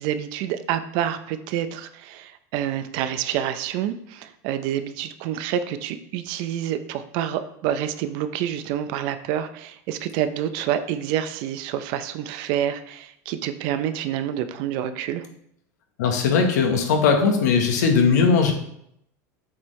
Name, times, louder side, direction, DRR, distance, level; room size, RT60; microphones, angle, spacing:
voice 1, 0.0-15.3, right 10 dB, 60° right, 11 dB, 0.6 m, -28 dB
voice 2, 16.0-18.5, left 5 dB, 85° left, 3 dB, 1.3 m, -19 dB
7.3 x 4.5 x 3.2 m, 0.73 s
supercardioid pair, 120°, 9 cm